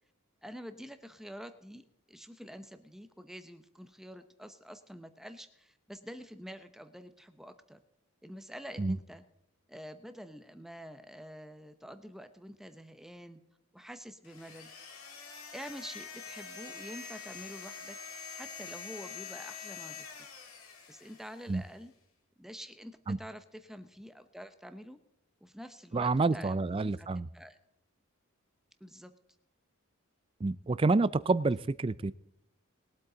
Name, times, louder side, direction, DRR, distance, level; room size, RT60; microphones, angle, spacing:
voice 1, 0.4-1.8 2.1-7.8 8.2-9.2 9.7-13.4 13.7-14.7 15.5-18.0 18.4-20.3 20.9-21.9 22.4-25.0 25.4-27.1 27.3-27.6 28.8-29.1, equal, ahead, 9 dB, 0.7 m, -47 dB
sound 1, 14.2-21.6, left 6 dB, 70° left, 2.0 m, -46 dB
voice 2, 25.9-27.3 30.4-32.1, right 3 dB, 25° right, 18 dB, 0.3 m, -28 dB
21.0 x 8.3 x 3.9 m, 0.80 s
head